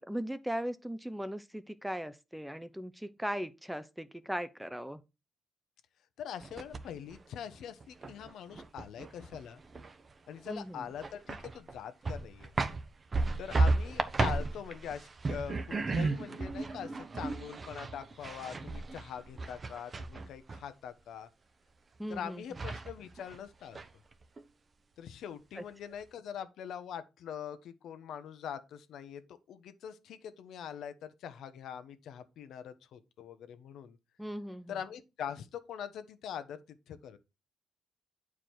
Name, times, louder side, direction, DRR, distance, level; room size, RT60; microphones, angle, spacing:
voice 1, 0.0-5.0 10.5-10.8 22.0-22.4 25.6-25.7 34.2-34.8, equal, 5° right, 0.7 m, -38 dB
voice 2, 6.2-9.6 10.3-12.5 13.4-21.3 22.1-23.8 25.0-34.0 34.7-36.6 36.9-37.2, left 8 dB, 75° left, 1.0 m, -43 dB
sound 1, 6.4-7.2 7.6-10.1 10.4-10.5 10.9-11.8 12.0-20.6 22.1-22.2 22.5-23.4 23.7-24.4, right 3 dB, 35° right, 0.9 m, -34 dB
8.5 x 4.9 x 4.5 m
cardioid pair, 90°, 0 cm